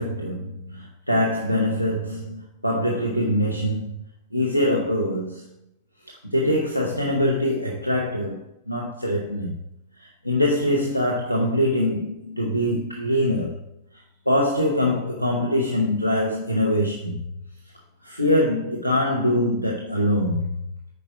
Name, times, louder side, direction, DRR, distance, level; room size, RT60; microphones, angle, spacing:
voice 1, 0.0-4.0 4.3-5.5 6.1-9.5 10.0-13.6 14.3-17.2 18.0-20.5, left 1 dB, 90° left, 1.0 m, -23 dB
9.2 x 4.9 x 6.0 m
figure-of-eight pair, 90°, 0 cm